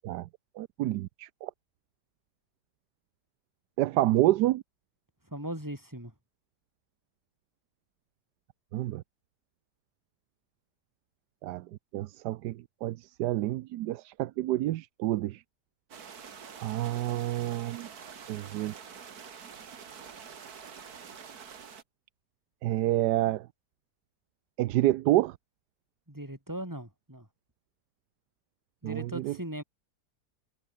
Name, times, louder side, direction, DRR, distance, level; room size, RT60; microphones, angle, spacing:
voice 1, 0.6-1.5 3.8-4.6 8.7-9.0 11.4-11.6 11.9-15.4 16.6-17.9 18.3-18.7 22.6-23.5 24.6-25.4 28.8-29.3, right 15 dB, 85° right, 1.2 m, -28 dB
voice 2, 5.3-6.1 26.1-27.3 28.8-29.6, right 1 dB, 10° right, 6.6 m, -38 dB
sound 1, 15.9-21.8, right 7 dB, 65° right, 2.1 m, -46 dB
omnidirectional pair, 1.7 m